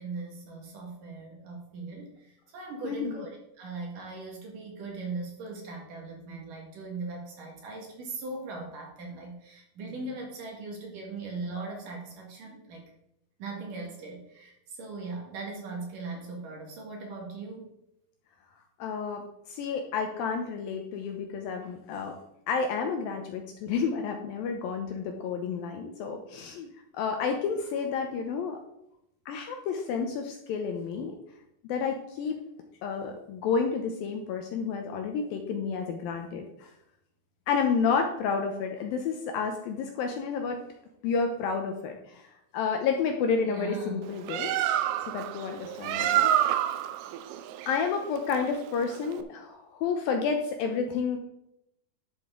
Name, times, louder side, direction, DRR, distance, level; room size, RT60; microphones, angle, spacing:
voice 1, 0.0-12.8 13.4-17.7 43.4-44.1, right 3 dB, 60° right, 1 dB, 3.0 m, -39 dB
voice 2, 18.8-22.2 22.5-26.7 26.9-28.6 29.3-31.2 31.6-32.4 32.8-36.7 37.5-40.6 41.0-42.3 42.5-44.5 45.0-46.3 47.7-51.2, left 5 dB, 75° left, 4 dB, 2.2 m, -30 dB
Bird, 44.0-49.2, right 11 dB, 80° right, 2.4 m, -28 dB
11.0 x 7.4 x 3.8 m, 0.81 s
omnidirectional pair, 4.8 m